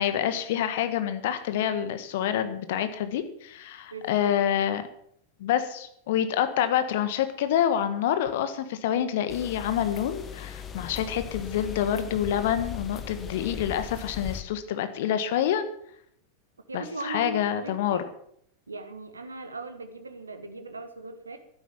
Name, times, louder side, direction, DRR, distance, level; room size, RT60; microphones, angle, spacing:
voice 1, 0.0-4.8 5.4-15.6 16.7-18.0, left 10 dB, 55° left, 10 dB, 1.6 m, -27 dB
voice 2, 3.9-4.4 16.7-18.0 18.7-21.4, right 3 dB, 75° right, 8 dB, 1.6 m, -38 dB
sound 1, 9.3-14.4, left 7 dB, 20° left, 1.6 m, -39 dB
12.5 x 10.0 x 7.3 m, 0.68 s
figure-of-eight pair, 90°, 0 cm